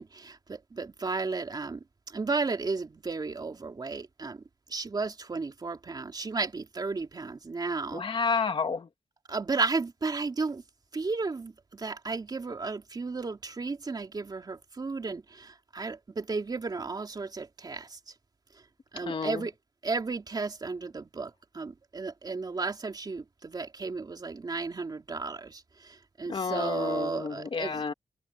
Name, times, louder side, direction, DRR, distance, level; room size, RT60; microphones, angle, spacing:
voice 1, 0.0-4.4 4.7-8.0 9.3-10.6 10.9-18.0 18.9-19.5 19.8-27.7, right 4 dB, 35° right, 3.3 m, -34 dB
voice 2, 7.9-8.9 19.0-19.5 26.3-27.9, left 5 dB, 45° left, 2.3 m, -30 dB
wide cardioid pair, 165°, 12 cm